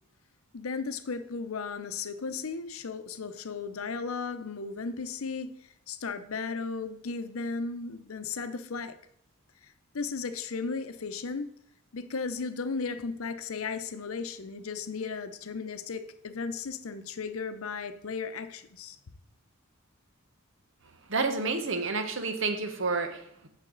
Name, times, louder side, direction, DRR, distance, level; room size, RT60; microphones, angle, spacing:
voice 1, 0.5-5.5 5.9-9.0 9.6-11.5 11.9-19.0, left 4 dB, 75° left, 0.7 m, -35 dB
voice 2, 21.1-23.5, right 3 dB, 60° right, 1.1 m, -30 dB
9.1 x 6.6 x 3.9 m
head